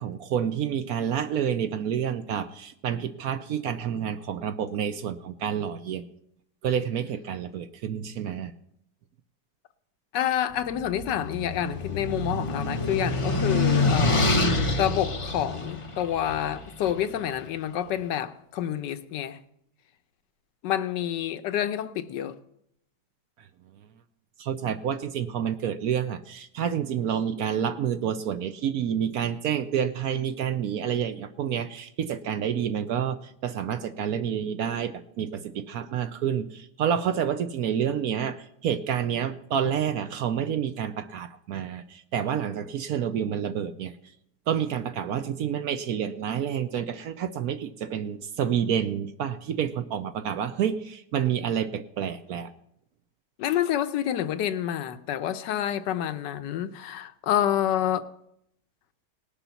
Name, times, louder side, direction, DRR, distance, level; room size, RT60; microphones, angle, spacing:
voice 1, 0.0-6.0 6.6-8.5 24.4-43.9 44.5-52.5, right 8 dB, 65° right, 1.0 m, -29 dB
voice 2, 10.1-14.3 14.8-19.4 20.6-22.3 53.4-58.1, left 10 dB, 80° left, 1.3 m, -28 dB
sound 1, 10.8-17.0, left 2 dB, 45° left, 0.4 m, -26 dB
19.0 x 7.0 x 5.7 m
omnidirectional pair, 1.9 m